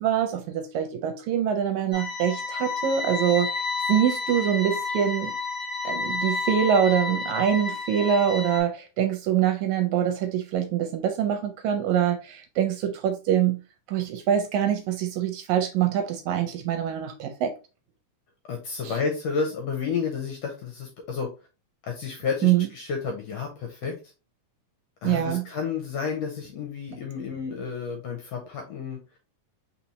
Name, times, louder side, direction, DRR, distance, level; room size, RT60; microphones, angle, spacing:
voice 1, 0.0-3.5 3.9-5.4 5.8-13.6 13.9-17.5 18.9-19.0 22.4-22.7 25.0-25.4, right 9 dB, 75° right, 1.8 m, -24 dB
sound 1, 1.9-8.6, left 3 dB, 50° left, 1.5 m, -30 dB
voice 2, 18.5-21.3 21.8-24.0 25.0-29.0, left 5 dB, 75° left, 1.6 m, -31 dB
4.2 x 4.1 x 3.0 m
omnidirectional pair, 3.7 m